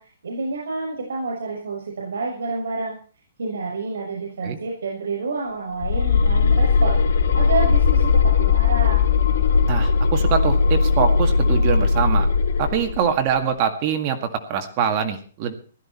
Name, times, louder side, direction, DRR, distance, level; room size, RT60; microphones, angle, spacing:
voice 1, 0.0-2.9 3.4-9.1, right 3 dB, 85° right, -1 dB, 6.3 m, -29 dB
sound 1, 5.8-13.0, left 5 dB, 70° left, 3.2 m, -18 dB
voice 2, 9.7-12.3 12.6-15.5, right 8 dB, 25° right, 6 dB, 1.9 m, -24 dB
16.0 x 13.0 x 4.4 m, 0.42 s
hypercardioid pair, 170°, 0 cm